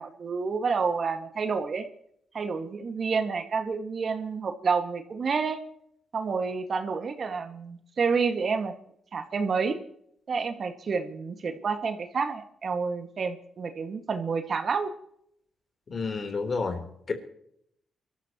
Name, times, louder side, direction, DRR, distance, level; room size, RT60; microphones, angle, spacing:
voice 1, 0.0-1.9 2.3-5.6 6.1-8.7 9.1-9.8 10.3-14.9, right 5 dB, 55° right, 7 dB, 1.9 m, -29 dB
voice 2, 15.9-17.1, left 4 dB, 50° left, 5 dB, 3.7 m, -30 dB
23.5 x 13.5 x 3.1 m, 0.71 s
cardioid pair, 60°, 0 cm